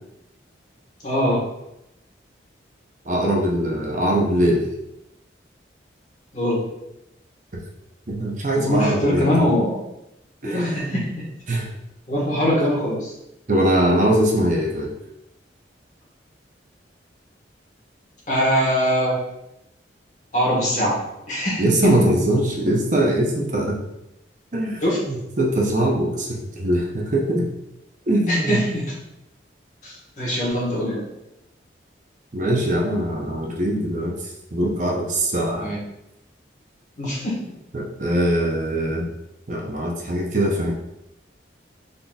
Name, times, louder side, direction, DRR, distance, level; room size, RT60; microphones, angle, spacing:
voice 1, 1.0-1.4 6.3-6.6 8.5-9.8 10.4-11.3 12.1-13.1 18.3-19.2 20.3-22.2 24.8-25.0 28.3-29.0 29.8-31.0 35.6-35.8 37.0-37.4, equal, 40° left, -4 dB, 1.3 m, -22 dB
voice 2, 3.1-4.6 8.1-9.3 10.4-11.0 11.5-11.7 13.5-14.9 21.6-23.8 24.5-27.5 28.1-28.6 32.3-34.2 34.5-35.7 37.7-39.1 39.5-40.7, right 1 dB, 40° right, -1 dB, 0.6 m, -22 dB
4.0 x 3.7 x 2.3 m, 0.85 s
head